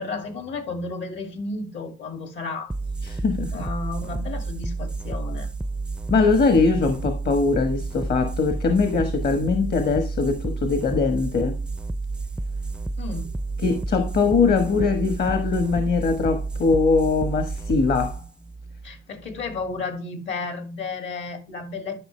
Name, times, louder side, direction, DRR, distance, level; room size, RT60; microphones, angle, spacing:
voice 1, 0.0-2.7 3.5-5.5 13.0-13.4 18.8-22.0, left 3 dB, 70° left, 2.4 m, -32 dB
sound 1, 2.7-19.7, right 3 dB, 5° right, 0.4 m, -30 dB
voice 2, 3.0-3.6 6.1-11.6 13.6-18.2, left 4 dB, 55° left, 1.3 m, -21 dB
11.5 x 5.3 x 3.2 m
cardioid pair, 90°, 20 cm